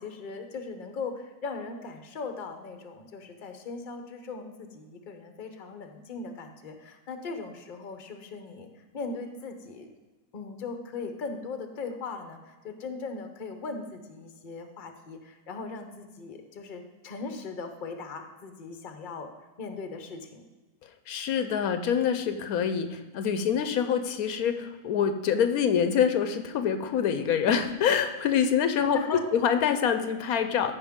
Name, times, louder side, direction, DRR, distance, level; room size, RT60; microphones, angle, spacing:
voice 1, 0.0-9.9 10.3-19.3 19.6-20.4 28.9-29.2, left 4 dB, 40° left, 6 dB, 0.9 m, -39 dB
voice 2, 21.1-29.0 29.3-30.7, left 8 dB, 85° left, 8 dB, 1.2 m, -25 dB
14.0 x 5.2 x 3.6 m, 1.2 s
omnidirectional pair, 1.5 m